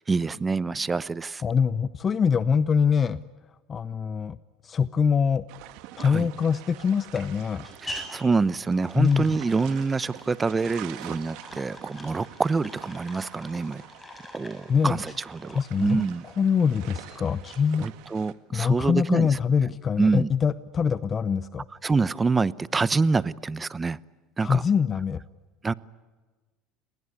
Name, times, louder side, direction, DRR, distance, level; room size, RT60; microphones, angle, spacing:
voice 1, 0.0-1.4 6.0-6.3 7.8-13.8 14.3-16.2 17.8-19.3 20.0-20.3 21.8-24.0 24.4-24.6 25.6-25.7, right 4 dB, 20° right, 0.8 m, -26 dB
voice 2, 1.4-3.2 3.7-4.4 4.6-5.4 6.0-7.7 9.0-9.4 14.7-15.0 15.5-16.1 16.4-17.9 18.5-21.7 24.4-25.2, left 6 dB, 30° left, 0.8 m, -24 dB
sound 1, 5.5-18.3, right 15 dB, 70° right, 1.9 m, -47 dB
sound 2, 6.3-17.5, left 1 dB, 10° left, 6.7 m, -46 dB
28.5 x 20.5 x 9.8 m
supercardioid pair, 120°, 0 cm